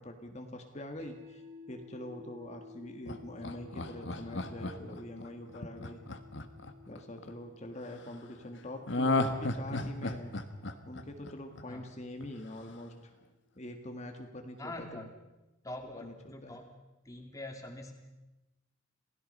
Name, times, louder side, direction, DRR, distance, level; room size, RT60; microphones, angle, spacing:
voice 1, 0.0-1.4 1.7-6.0 6.9-10.3 10.8-13.1 13.5-15.0 16.0-16.6, left 1 dB, 35° left, 4 dB, 1.7 m, -44 dB
sound 1, 1.0-13.1, left 4 dB, 30° right, 3.2 m, -56 dB
Laughter, 3.1-7.3 8.9-11.9 12.2-12.3, left 2 dB, 65° left, 1.6 m, -34 dB
voice 2, 14.6-15.1 15.6-16.7 17.0-17.9, left 2 dB, 15° left, 3 dB, 2.8 m, -44 dB
28.0 x 17.0 x 5.4 m, 1.0 s
head